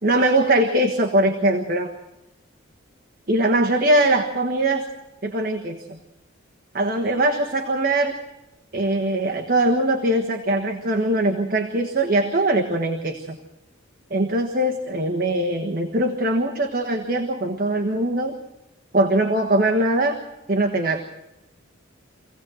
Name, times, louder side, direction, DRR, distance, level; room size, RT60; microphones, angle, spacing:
voice 1, 0.0-1.9 3.3-4.8 5.2-6.0 6.7-8.1 8.7-13.4 14.1-18.3 18.9-20.2 20.5-21.0, right 1 dB, 45° right, 2 dB, 1.4 m, -21 dB
25.5 x 17.0 x 7.8 m, 1.0 s
head